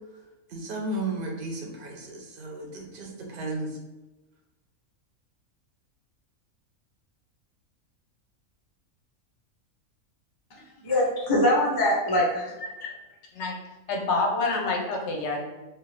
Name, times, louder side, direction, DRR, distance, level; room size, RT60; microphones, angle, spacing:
voice 1, 0.5-3.7, right 2 dB, 55° right, 0 dB, 0.6 m, -34 dB
voice 2, 10.8-12.9, left 1 dB, 40° left, -2 dB, 0.3 m, -24 dB
voice 3, 13.9-15.4, left 3 dB, 65° left, 1 dB, 0.8 m, -27 dB
2.8 x 2.3 x 3.2 m, 1.1 s
omnidirectional pair, 1.5 m